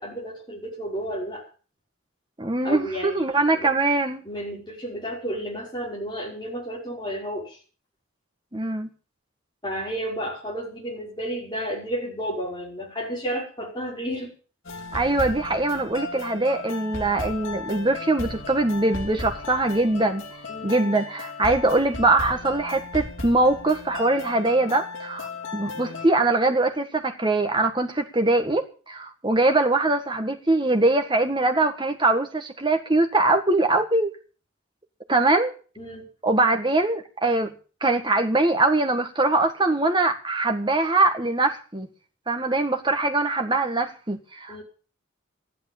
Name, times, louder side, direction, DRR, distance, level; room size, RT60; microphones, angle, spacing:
voice 1, 0.0-1.5 2.6-3.7 4.2-7.6 9.6-14.3 20.5-20.9 35.8-36.1 44.5-44.6, equal, 20° left, -2 dB, 5.4 m, -32 dB
voice 2, 2.4-4.2 8.5-8.9 14.9-20.2 20.6-34.1 35.1-35.5 36.2-37.5 37.8-41.9 42.3-44.6, right 2 dB, 20° right, 6 dB, 1.6 m, -22 dB
sound 1, 14.6-26.1, left 3 dB, 75° left, 3.0 m, -35 dB
13.5 x 11.0 x 7.2 m, 0.38 s
head